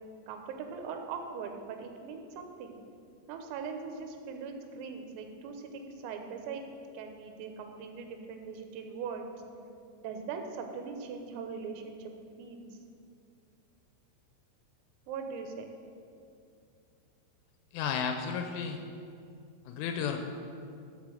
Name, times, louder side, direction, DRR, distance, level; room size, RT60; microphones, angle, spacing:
voice 1, 0.3-2.8 3.3-6.7 6.9-9.3 10.0-12.1 12.4-12.7 15.1-15.7, right 5 dB, 90° right, 4 dB, 3.6 m, -40 dB
voice 2, 17.7-18.8 19.7-20.3, left 6 dB, 80° left, 5 dB, 3.0 m, -33 dB
13.0 x 4.8 x 7.7 m, 2.4 s
omnidirectional pair, 6.0 m